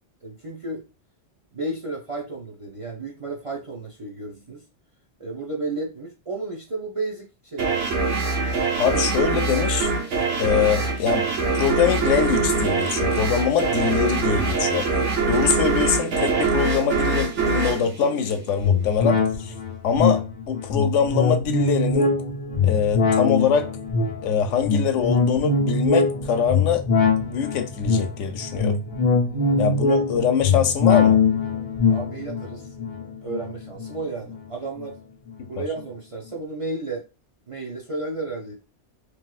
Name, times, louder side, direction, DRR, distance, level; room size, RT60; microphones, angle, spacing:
voice 1, 0.2-0.8 1.5-4.6 5.2-7.9 14.9-15.1 29.2-29.7 31.9-32.7 33.2-35.0 35.5-37.0 37.5-38.5, right 2 dB, 40° right, 0.5 m, -33 dB
sound 1, 7.6-18.9, right 4 dB, 75° right, 1.2 m, -23 dB
voice 2, 8.8-9.9 10.4-11.3 11.5-14.9 15.3-19.5 19.8-20.2 20.5-22.1 22.6-23.7 24.2-26.8 27.2-28.8 29.6-31.2 35.4-35.6, left 7 dB, 90° left, 0.9 m, -23 dB
sound 2, 18.6-34.4 34.8-34.9, left 4 dB, 45° left, 0.7 m, -22 dB
3.0 x 2.8 x 2.4 m
omnidirectional pair, 1.2 m